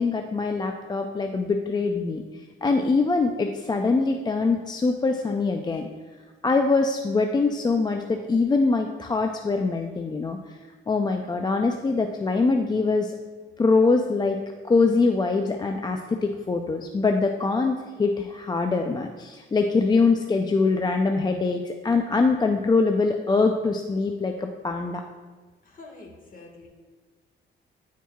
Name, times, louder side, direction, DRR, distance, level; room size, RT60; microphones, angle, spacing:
voice 1, 0.0-2.2 2.6-5.8 6.4-10.6 10.9-13.1 13.6-14.4 14.7-25.0, left 3 dB, 20° left, 4 dB, 0.4 m, -23 dB
voice 2, 25.6-26.7, left 3 dB, 45° left, 0 dB, 1.6 m, -46 dB
10.0 x 4.6 x 2.3 m, 1.4 s
cardioid pair, 90°, 20 cm